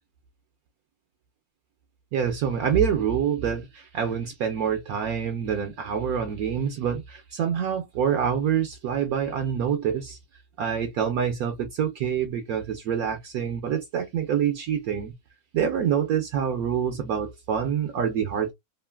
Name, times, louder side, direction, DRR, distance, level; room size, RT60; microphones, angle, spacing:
voice 1, 2.1-10.2 10.6-15.1 15.5-18.5, right 8 dB, 70° right, 0.9 m, -26 dB
3.0 x 2.5 x 2.2 m
omnidirectional pair, 1.8 m